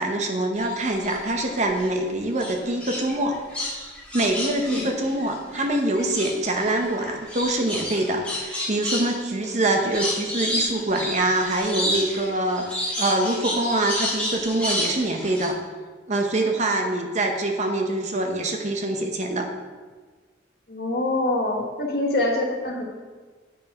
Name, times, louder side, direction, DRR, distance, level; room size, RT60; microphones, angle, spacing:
voice 1, 0.0-3.4 4.1-15.6 16.1-19.5, right 1 dB, 40° right, 3 dB, 0.8 m, -24 dB
sound 1, 0.6-1.9 2.4-5.7 5.9-15.5, left 1 dB, 5° left, 1.8 m, -30 dB
voice 2, 20.7-22.8, left 2 dB, 55° left, 1 dB, 1.3 m, -25 dB
8.2 x 4.6 x 5.3 m, 1.4 s
head